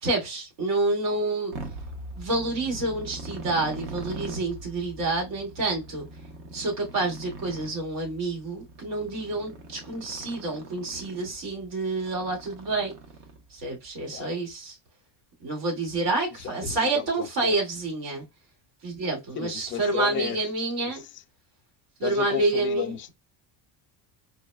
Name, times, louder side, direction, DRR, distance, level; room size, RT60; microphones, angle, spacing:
voice 1, 0.0-1.6 2.1-6.1 6.5-12.9 13.5-14.8 15.4-18.2 18.8-21.0 22.0-22.9, right 2 dB, 80° right, 2.3 m, -28 dB
Motorcycle, 1.5-13.6, right 2 dB, 65° right, 1.0 m, -42 dB
voice 2, 16.6-17.6 19.3-20.5 20.9-21.0 22.0-23.1, left 10 dB, 30° left, 0.3 m, -34 dB
4.6 x 2.2 x 2.2 m
cardioid pair, 140°, 47 cm